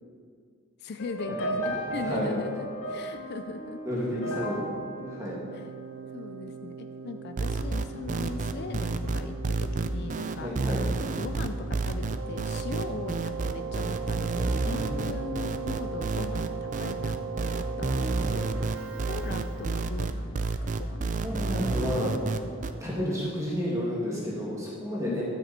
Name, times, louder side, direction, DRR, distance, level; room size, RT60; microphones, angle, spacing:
voice 1, 0.8-3.8 4.3-4.4 5.5-5.6 6.1-10.5 11.2-17.2 17.4-21.1 21.3-21.4 25.0-25.2, left 4 dB, 50° left, 8 dB, 0.4 m, -39 dB
sound 1, 1.0-6.3, right 1 dB, 90° left, 2.0 m, -36 dB
voice 2, 1.7-2.3 3.8-4.6 5.0-5.4 10.3-10.8 14.7-15.1 18.2-18.6 21.1-22.3 22.8-25.2, equal, 15° right, -6 dB, 2.3 m, -31 dB
Keyboard (musical), 5.0-20.0, right 6 dB, 60° right, 0.8 m, -39 dB
sound 2, 7.4-22.7, right 3 dB, 35° right, 0.4 m, -29 dB
13.5 x 6.7 x 4.3 m, 2.2 s
head